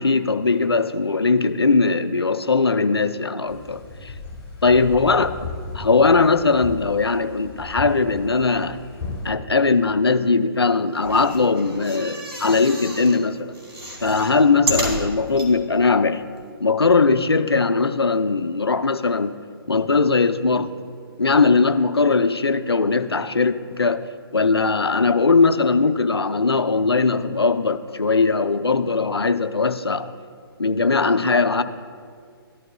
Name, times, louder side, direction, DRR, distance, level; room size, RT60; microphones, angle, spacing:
voice 1, 0.0-4.1 4.6-5.5 5.7-8.8 9.2-13.5 14.0-16.2 16.6-19.4 19.7-20.7 21.2-24.1 24.3-30.1 30.6-31.6, left 4 dB, 80° left, 11 dB, 0.5 m, -19 dB
sound 1, 3.5-9.3, left 3 dB, 20° left, 1.9 m, -36 dB
sound 2, 10.9-13.2 13.5-15.5 16.1-16.2 16.4-16.5, right 1 dB, 85° right, 1.9 m, -30 dB
13.5 x 11.5 x 2.3 m, 2.1 s
figure-of-eight pair, 135°, 13 cm